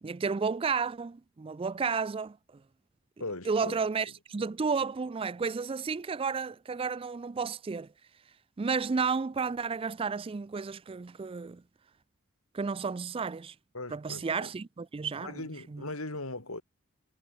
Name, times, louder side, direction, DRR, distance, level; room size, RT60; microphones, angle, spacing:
voice 1, 0.0-2.6 3.5-7.9 8.6-11.6 12.5-13.5 13.9-15.4 15.7-15.8, right 5 dB, 25° right, 0.4 m, -32 dB
voice 2, 3.2-3.8 13.7-14.5 15.2-16.6, left 2 dB, 85° left, 5.7 m, -39 dB
head